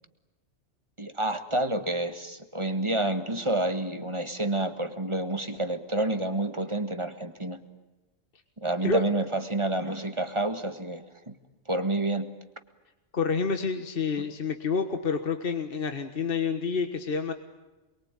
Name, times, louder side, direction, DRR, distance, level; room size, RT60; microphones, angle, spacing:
voice 1, 1.0-7.6 8.6-11.4 11.7-12.3, right 2 dB, 25° right, 8 dB, 1.7 m, -29 dB
voice 2, 13.1-17.3, left 5 dB, 50° left, 6 dB, 1.7 m, -28 dB
28.5 x 22.5 x 9.0 m, 1.1 s
omnidirectional pair, 1.2 m